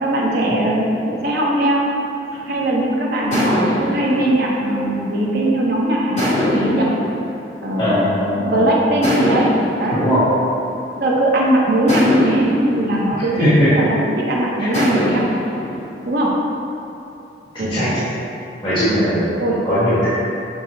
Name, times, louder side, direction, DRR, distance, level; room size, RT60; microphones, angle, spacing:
voice 1, 0.0-1.9 2.5-6.9 7.6-8.1 8.4-9.5 9.8-10.0 10.9-15.2 16.1-16.4 17.6-18.0 18.9-19.1 19.4-19.6, right 1 dB, 60° right, -3 dB, 0.6 m, -19 dB
sound 1, 2.4-2.7 3.3-5.6 6.2-8.4 9.0-11.2 11.9-14.1 14.7-16.3, equal, 45° left, 1.2 m, -24 dB
voice 2, 7.8-8.8 9.9-10.2 13.4-13.7 17.5-18.0 18.6-19.2 19.6-20.1, equal, 25° left, -15 dB, 1.2 m, -19 dB
6.0 x 2.0 x 3.7 m, 2.8 s
head